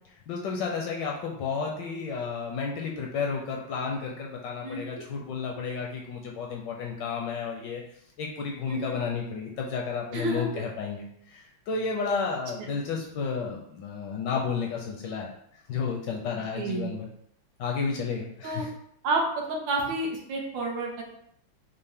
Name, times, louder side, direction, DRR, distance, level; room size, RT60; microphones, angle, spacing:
voice 1, 0.3-7.8 8.2-15.3 15.7-17.1 17.6-18.7, left 5 dB, 70° left, 0 dB, 1.1 m, -32 dB
voice 2, 10.1-10.6 12.6-12.7 16.6-16.9 18.4-18.6 19.0-19.2 19.5-21.0, right 2 dB, 70° right, 0 dB, 1.4 m, -30 dB
5.4 x 2.1 x 3.5 m, 0.70 s
omnidirectional pair, 2.3 m